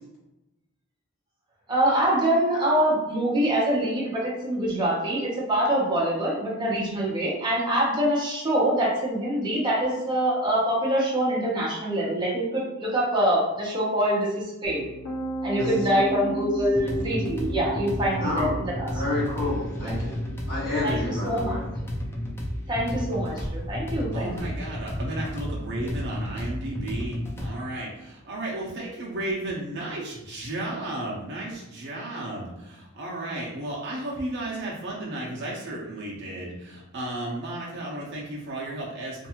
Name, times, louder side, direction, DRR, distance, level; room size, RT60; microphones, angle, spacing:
voice 1, 1.7-14.8 15.4-18.9 19.8-19.9 20.8-21.5 22.7-24.3, right 1 dB, 20° right, -5 dB, 0.7 m, -25 dB
Piano, 14.6-26.6, right 2 dB, 90° left, 0.8 m, -36 dB
sound 1, 16.6-27.5, equal, 10° left, 0.4 m, -32 dB
voice 2, 18.2-18.5 18.9-20.2 20.5-21.6, left 2 dB, 50° left, -8 dB, 1.3 m, -29 dB
voice 3, 24.1-39.3, right 1 dB, 55° right, -4 dB, 0.6 m, -34 dB
2.6 x 2.3 x 2.8 m, 0.97 s
head